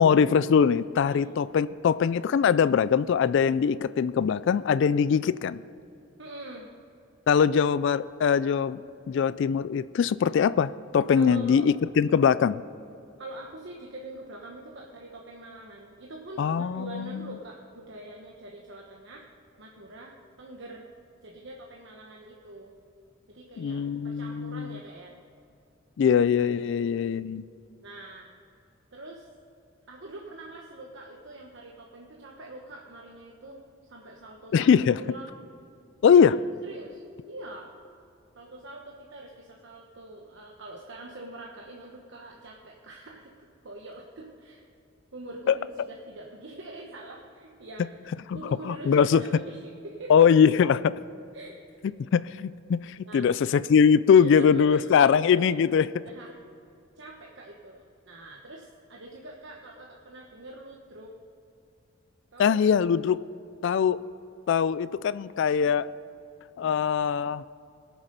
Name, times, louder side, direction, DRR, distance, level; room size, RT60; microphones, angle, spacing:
voice 1, 0.0-5.6 7.3-8.8 9.1-12.6 16.4-17.3 23.6-24.8 26.0-27.4 34.5-35.0 36.0-36.4 45.5-45.6 48.6-49.2 50.1-50.9 52.1-55.9 62.4-63.2 63.6-64.0 64.5-65.9 66.6-67.4, left 7 dB, 60° left, 17 dB, 0.3 m, -22 dB
voice 2, 6.2-6.7 11.1-11.7 13.2-19.3 19.6-20.8 21.2-22.7 23.3-25.2 26.6-27.0 27.8-28.3 28.9-29.3 29.9-33.6 33.9-35.3 36.1-36.2 36.6-37.7 38.3-44.7 45.1-50.3 51.3-51.8 53.0-53.4 54.2-55.6 56.0-56.4 57.0-61.1 62.3-62.6, right 2 dB, 60° right, -1 dB, 1.1 m, -44 dB
21.5 x 7.3 x 5.3 m, 2.6 s
head